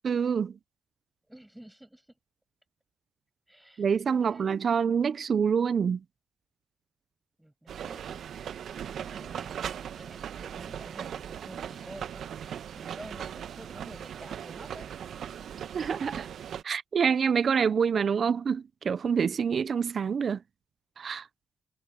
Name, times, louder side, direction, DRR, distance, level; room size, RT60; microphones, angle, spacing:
voice 1, 0.0-0.5 3.8-6.0 15.7-16.3 16.6-20.4 21.0-21.3, right 6 dB, 45° right, 0.6 m, -26 dB
voice 2, 1.3-2.0 3.5-3.8 4.2-4.6 7.4-8.3 9.0-14.9, right 1 dB, 5° right, 7.3 m, -50 dB
sound 1, 7.7-16.6, right 9 dB, 65° right, 1.1 m, -39 dB
cardioid pair, 90°, 0 cm